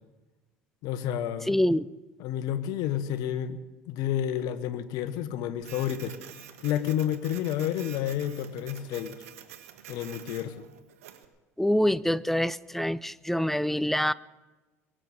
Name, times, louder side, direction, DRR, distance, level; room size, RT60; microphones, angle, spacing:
voice 1, 0.8-1.5 2.2-3.6 3.9-6.1 6.6-9.2 9.9-10.7, left 10 dB, 60° left, 12 dB, 1.2 m, -30 dB
voice 2, 1.5-1.9 11.6-14.1, left 1 dB, 5° left, 19 dB, 0.5 m, -25 dB
Printer, 5.6-11.3, right 10 dB, 75° right, 1.4 m, -47 dB
23.0 x 7.7 x 6.8 m, 1.2 s
hypercardioid pair, 70°, 8 cm